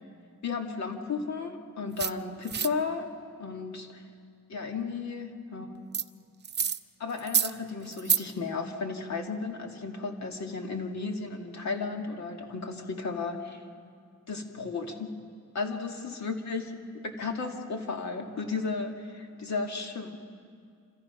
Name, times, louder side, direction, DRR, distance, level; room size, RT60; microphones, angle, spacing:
voice 1, 0.4-3.1 3.4-4.0 4.5-5.7 7.0-13.6 14.3-15.1 15.5-20.2, left 4 dB, 55° left, 3 dB, 2.1 m, -34 dB
sound 1, 2.0-2.1 2.5-2.7 5.9-6.0 6.4-6.8 7.2-7.5 7.9-8.2, right 7 dB, 30° right, 0.6 m, -27 dB
27.0 x 26.0 x 5.8 m, 2.2 s
wide cardioid pair, 140°, 33 cm